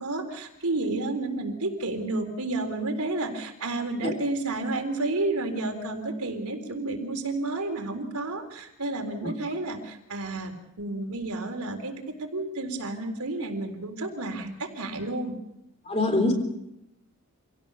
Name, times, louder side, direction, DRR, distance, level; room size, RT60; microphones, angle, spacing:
voice 1, 0.0-10.5 10.8-11.9 12.2-15.4, right 2 dB, 90° right, 4 dB, 3.9 m, -31 dB
voice 2, 15.9-16.3, left 2 dB, 25° left, 5 dB, 3.7 m, -23 dB
26.5 x 17.0 x 6.9 m, 0.83 s
head